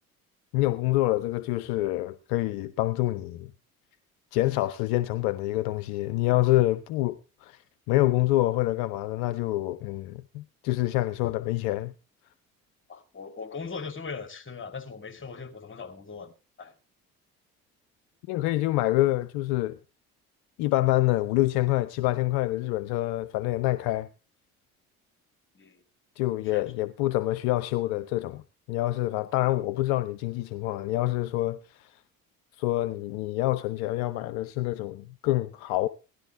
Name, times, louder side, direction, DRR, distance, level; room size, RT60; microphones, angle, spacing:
voice 1, 0.5-3.5 4.3-7.6 7.9-11.9 18.3-19.8 20.6-24.1 26.2-28.4 28.7-31.9 32.6-35.9, left 17 dB, 60° left, 0.8 m, -26 dB
voice 2, 12.9-16.3 16.6-16.7 25.5-25.8 26.4-26.6, left 5 dB, 25° left, 2.9 m, -39 dB
17.0 x 12.5 x 3.5 m
figure-of-eight pair, 50°, 44 cm